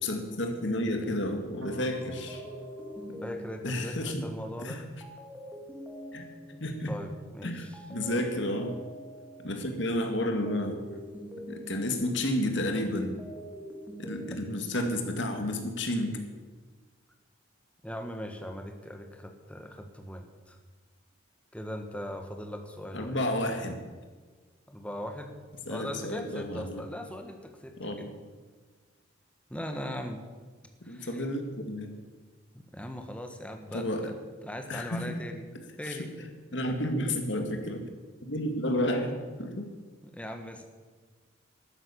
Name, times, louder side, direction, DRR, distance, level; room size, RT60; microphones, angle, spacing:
voice 1, 0.0-2.4 3.1-3.2 3.6-4.2 4.6-4.8 6.1-6.3 6.6-6.9 7.4-8.8 9.4-10.8 11.5-13.2 14.0-16.2 22.9-23.7 25.7-26.8 27.8-28.1 30.8-31.9 33.7-34.1 34.7-35.2 35.9-37.9 38.3-39.7, left 1 dB, 65° left, 5 dB, 2.1 m, -31 dB
sound 1, 1.6-4.6, right 1 dB, 80° right, 2.0 m, -47 dB
sound 2, 2.3-7.4 7.7-12.7 13.0-15.2, equal, 10° right, 2.0 m, -46 dB
voice 2, 3.2-4.8 6.5-7.8 17.8-20.6 21.5-23.2 24.7-25.3 25.7-28.1 29.5-30.2 30.8-31.3 32.5-35.4 35.8-36.1 40.0-40.6, equal, 5° left, 5 dB, 1.4 m, -40 dB
12.5 x 10.0 x 8.5 m, 1.4 s
head